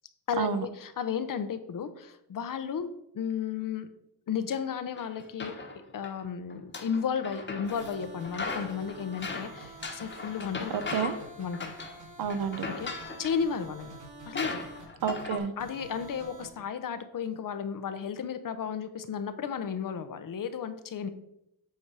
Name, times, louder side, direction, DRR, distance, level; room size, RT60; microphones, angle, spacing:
voice 1, 0.3-2.9 3.1-3.9 4.3-5.5 5.9-10.7 11.4-11.7 12.6-14.0 14.3-14.6 15.6-21.1, left 7 dB, 55° left, 10 dB, 0.8 m, -33 dB
sound 1, 5.0-6.1 6.5-8.0 8.2-11.3 11.5-12.0 12.3-13.4 13.9-14.0 14.4-15.4, left 3 dB, 30° left, 1.2 m, -38 dB
sound 2, 7.6-16.5, right 2 dB, 50° right, 2.2 m, -48 dB
voice 2, 10.7-11.1 12.2-12.6 15.0-15.5, right 7 dB, 65° right, 11 dB, 0.9 m, -29 dB
8.2 x 4.6 x 4.7 m, 0.82 s
cardioid pair, 100°, 39 cm